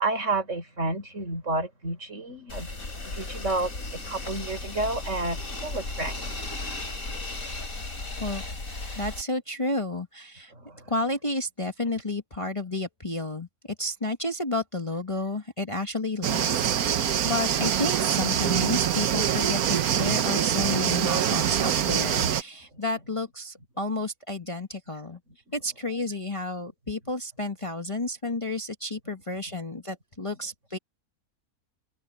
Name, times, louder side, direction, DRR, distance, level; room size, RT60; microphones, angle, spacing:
voice 1, 0.0-2.7 3.0-6.3 10.5-10.9, right 2 dB, 55° right, 5.4 m, -30 dB
sound 1, 2.5-9.2, left 2 dB, 65° left, 4.4 m, -35 dB
voice 2, 9.0-10.5 10.9-16.6 16.9-25.2 25.5-30.8, left 2 dB, 20° left, 1.5 m, -31 dB
sound 2, 16.2-22.4, right 9 dB, 75° right, 1.4 m, -24 dB
omnidirectional pair, 1.6 m